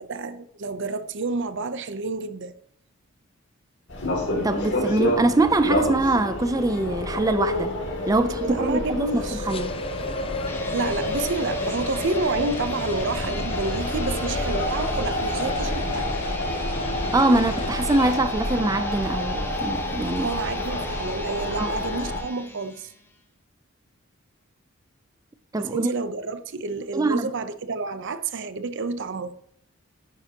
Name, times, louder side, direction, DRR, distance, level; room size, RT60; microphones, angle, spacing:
voice 1, 0.0-2.5 8.4-9.5 10.7-16.1 20.2-22.9 25.6-29.4, right 3 dB, 60° right, 0.7 m, -29 dB
sound 1, 3.9-22.2, left 1 dB, 60° left, 2.6 m, -28 dB
voice 2, 4.4-7.7 8.1-9.7 17.1-20.3 21.6-21.7 25.5-25.9 26.9-27.3, right 2 dB, 15° right, 0.4 m, -23 dB
sound 2, 9.5-18.2, left 4 dB, 25° left, 0.6 m, -39 dB
sound 3, 10.4-23.1, left 2 dB, 10° left, 1.1 m, -39 dB
11.0 x 9.2 x 2.9 m
head